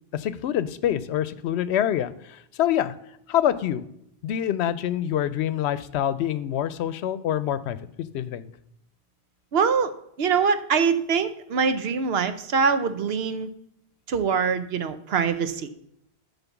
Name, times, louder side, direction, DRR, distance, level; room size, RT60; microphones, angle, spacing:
voice 1, 0.1-2.9 3.3-3.8 4.2-7.8 8.1-8.5, left 10 dB, 85° left, 15 dB, 0.8 m, -26 dB
voice 2, 9.5-9.9 10.2-13.5 14.1-15.7, right 6 dB, 70° right, 11 dB, 0.9 m, -23 dB
11.0 x 4.0 x 6.9 m, 0.76 s
omnidirectional pair, 1.1 m